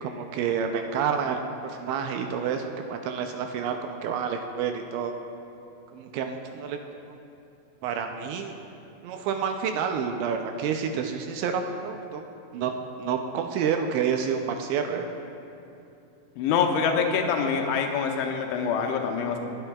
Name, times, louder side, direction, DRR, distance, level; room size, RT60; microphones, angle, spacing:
voice 1, 0.0-5.2 5.9-6.8 7.1-7.2 7.8-8.6 9.0-12.2 12.5-12.7 13.0-15.1, right 7 dB, 80° right, 5 dB, 2.8 m, -29 dB
voice 2, 16.4-19.4, left 6 dB, 90° left, 3 dB, 3.2 m, -25 dB
23.5 x 10.0 x 2.3 m, 2.7 s
omnidirectional pair, 5.3 m